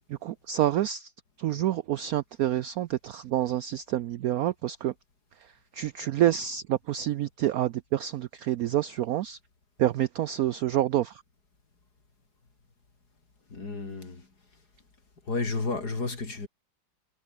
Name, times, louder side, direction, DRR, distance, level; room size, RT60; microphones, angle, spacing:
voice 1, 0.1-1.1 1.4-4.9 5.7-9.4 9.8-11.2, right 12 dB, 75° right, 0.8 m, -28 dB
voice 2, 13.5-14.2 15.3-16.5, left 3 dB, 55° left, 4.4 m, -31 dB
omnidirectional pair, 2.1 m